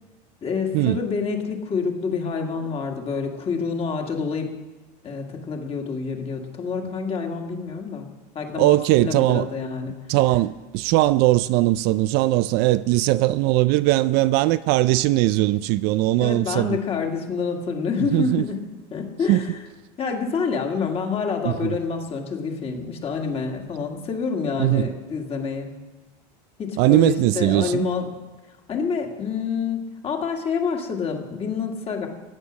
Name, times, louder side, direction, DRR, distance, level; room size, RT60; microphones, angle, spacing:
voice 1, 0.4-4.5 5.0-8.1 8.3-10.0 16.2-18.6 18.9-19.6 20.0-25.7 26.6-28.1 28.7-32.1, left 5 dB, 30° left, 2.1 m, -27 dB
voice 2, 8.6-9.5 10.1-16.8 18.1-18.4 19.3-19.4 21.5-21.7 24.6-24.9 26.8-27.9, right 17 dB, 55° right, 0.4 m, -20 dB
15.0 x 9.1 x 6.4 m
supercardioid pair, 130°, 21 cm